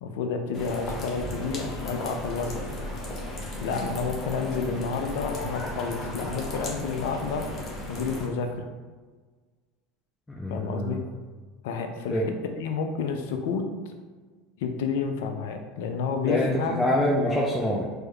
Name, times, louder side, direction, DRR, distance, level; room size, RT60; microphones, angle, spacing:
voice 1, 0.0-2.6 3.6-7.5 7.9-8.7 10.5-11.0 11.6-13.7 14.6-16.9, left 5 dB, 65° left, 6 dB, 0.4 m, -30 dB
sound 1, 0.5-8.3, left 1 dB, 40° left, 0.8 m, -35 dB
voice 2, 10.4-11.0 12.1-12.3 16.2-17.8, left 1 dB, 10° left, -4 dB, 0.5 m, -25 dB
4.5 x 2.0 x 3.1 m, 1.4 s
figure-of-eight pair, 75°, 0 cm